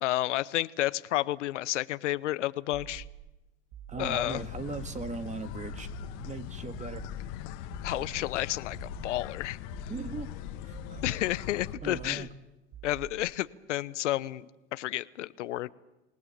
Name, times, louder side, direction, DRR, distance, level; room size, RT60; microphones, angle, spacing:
voice 1, 0.0-3.0 4.0-4.4 7.8-9.6 11.0-12.3 12.8-14.5 14.7-15.7, left 15 dB, 80° left, 17 dB, 0.8 m, -31 dB
sound 1, 2.7-3.4 3.7-4.4 4.7-5.3 5.7-6.4 6.7-7.3 7.7-8.4 8.7-9.3 9.7-10.4 10.7-11.4 11.7-12.4 12.7-13.4, right 10 dB, 45° right, 1.4 m, -47 dB
voice 2, 3.9-5.9 6.2-7.0 9.9-10.3 10.6-11.0 11.8-12.3, right 4 dB, 20° right, 9 dB, 1.8 m, -38 dB
sound 2, 4.0-11.8, left 12 dB, 60° left, 1.7 m, -41 dB
26.5 x 18.5 x 7.2 m, 0.99 s
hypercardioid pair, 100°, 36 cm